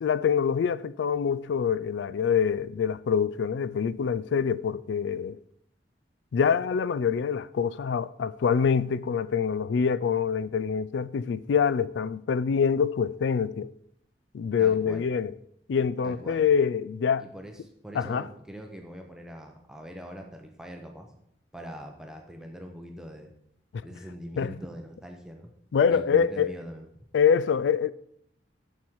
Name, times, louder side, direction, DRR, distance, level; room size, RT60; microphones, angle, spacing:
voice 1, 0.0-5.4 6.3-13.7 14.3-15.3 15.7-17.3 18.0-18.2 23.7-23.8 24.4-24.6 25.7-26.5 27.1-27.9, left 7 dB, 80° left, 0.3 m, -25 dB
voice 2, 14.6-15.0 16.0-16.4 17.2-21.2 21.5-23.3 23.8-25.5 25.9-26.9, equal, 5° right, 0.8 m, -42 dB
7.1 x 6.5 x 4.6 m
head